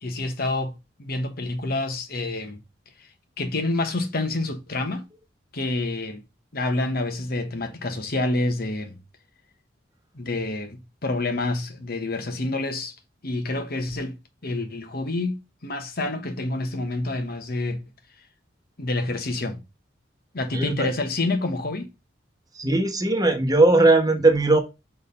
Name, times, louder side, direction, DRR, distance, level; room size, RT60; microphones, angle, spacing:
voice 1, 0.0-2.6 3.0-3.1 3.4-5.0 5.5-6.2 6.5-9.0 10.1-12.9 13.2-14.2 14.4-17.8 18.8-19.6 20.3-21.9, left 2 dB, 55° left, 1.2 m, -28 dB
voice 2, 20.5-20.9 22.6-24.6, right 2 dB, 20° right, 1.1 m, -19 dB
6.4 x 3.4 x 5.4 m
head